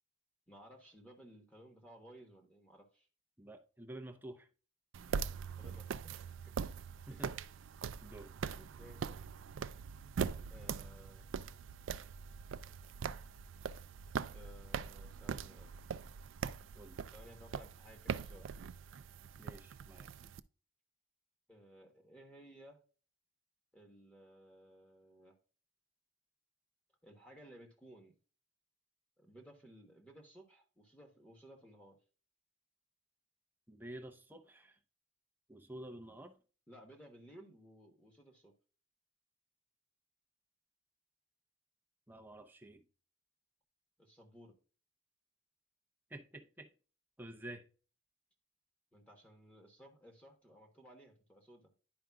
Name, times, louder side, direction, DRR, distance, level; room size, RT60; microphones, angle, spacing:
voice 1, 0.5-3.1 5.6-6.7 7.1-7.3 8.5-9.3 10.5-11.3 14.3-15.8 17.1-18.5 21.5-22.8 23.7-25.4 27.0-28.1 29.2-32.0 36.7-38.5 44.0-44.6 48.9-51.7, right 1 dB, 5° left, 1.2 m, -58 dB
voice 2, 3.4-4.5 7.1-7.3 8.0-8.3 16.7-17.0 19.4-20.1 33.7-34.8 35.5-36.4 42.1-42.8 46.1-46.7 47.2-47.7, right 1 dB, 10° right, 0.6 m, -50 dB
sound 1, 4.9-20.4, right 6 dB, 75° right, 0.3 m, -42 dB
10.5 x 5.0 x 2.3 m
head